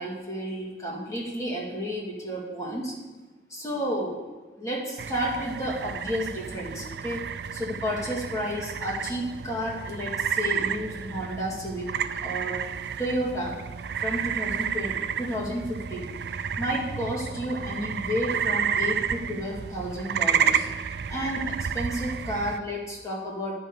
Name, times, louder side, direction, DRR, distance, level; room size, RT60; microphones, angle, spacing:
voice 1, 0.0-2.9 3.5-4.2 4.6-7.2 7.5-11.9 12.2-12.6 13.0-13.5 14.0-16.1 16.6-20.7 21.1-21.4 21.7-23.5, equal, 20° left, -3 dB, 2.0 m, -31 dB
sound 1, 5.0-22.6, right 7 dB, 75° right, 0.4 m, -31 dB
10.5 x 5.6 x 6.6 m, 1.2 s
head